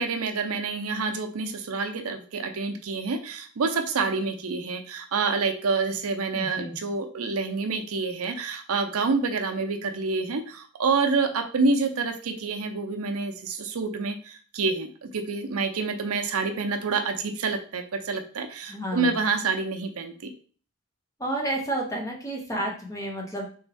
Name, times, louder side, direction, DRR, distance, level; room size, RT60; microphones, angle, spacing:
voice 1, 0.0-20.3, right 4 dB, 90° right, 5 dB, 0.6 m, -27 dB
voice 2, 6.3-6.8 18.7-19.2 21.2-23.5, right 1 dB, 15° left, 0 dB, 0.9 m, -31 dB
3.5 x 3.1 x 3.4 m, 0.42 s
head